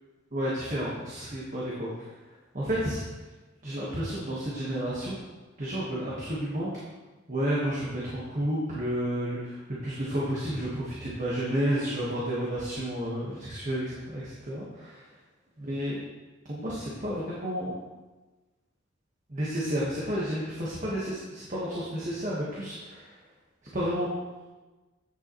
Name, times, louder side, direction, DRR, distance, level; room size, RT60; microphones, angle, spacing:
voice 1, 0.3-2.1 2.5-3.0 3.6-5.2 5.6-6.7 7.3-15.0 15.6-16.0 16.5-17.7 19.3-23.2 23.7-24.1, equal, 40° right, -6 dB, 1.4 m, -31 dB
8.9 x 6.8 x 3.1 m, 1.2 s
head